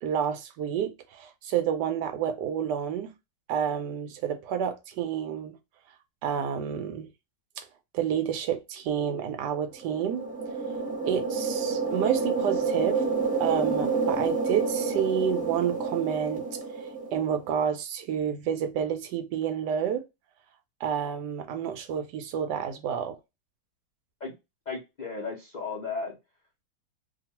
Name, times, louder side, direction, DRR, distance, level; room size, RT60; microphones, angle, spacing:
voice 1, 0.0-3.1 3.5-5.6 6.2-7.1 7.6-7.7 7.9-10.3 11.0-13.0 13.4-16.4 17.1-20.0 20.8-23.2, right 8 dB, 80° right, 1.2 m, -29 dB
sound 1, 9.7-17.4, right 4 dB, 15° right, 0.3 m, -29 dB
voice 2, 24.7-26.2, left 4 dB, 70° left, 0.4 m, -35 dB
2.9 x 2.3 x 2.8 m
omnidirectional pair, 1.9 m